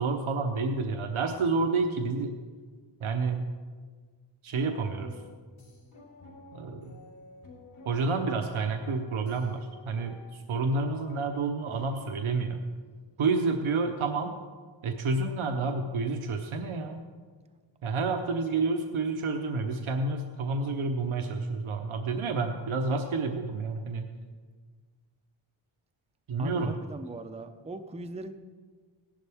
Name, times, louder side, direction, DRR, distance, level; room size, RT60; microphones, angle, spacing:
voice 1, 0.0-2.3 3.0-3.5 4.4-5.1 6.5-6.8 7.8-12.6 13.2-14.3 14.8-17.0 17.8-24.1 26.3-26.7, right 3 dB, 75° right, 5 dB, 0.9 m, -29 dB
sound 1, 4.6-12.3, left 3 dB, 70° left, 3.8 m, -51 dB
voice 2, 26.4-28.3, right 2 dB, 15° right, 7 dB, 0.5 m, -40 dB
16.5 x 11.5 x 3.5 m, 1.5 s
wide cardioid pair, 130°, 49 cm